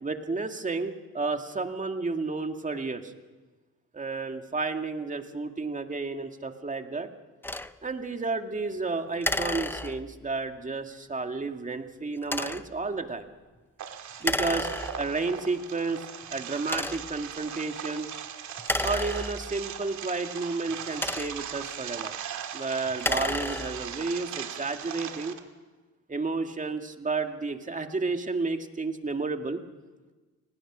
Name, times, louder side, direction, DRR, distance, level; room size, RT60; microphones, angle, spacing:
voice 1, 0.0-3.1 3.9-7.1 7.8-13.3 14.2-14.7 15.0-18.1 18.8-22.2 22.5-25.4 26.1-29.6, right 3 dB, 25° right, 5 dB, 2.1 m, -31 dB
sound 1, 7.4-7.7 9.2-10.3 12.2-12.8 14.2-15.2 15.9-16.0 16.6-17.2 18.6-19.7 20.7-21.6 22.9-24.0, left 1 dB, 5° left, 0.8 m, -31 dB
sound 2, 13.8-25.4, right 9 dB, 70° right, 2.2 m, -39 dB
29.5 x 20.0 x 6.2 m, 1.3 s
cardioid pair, 90°, 30 cm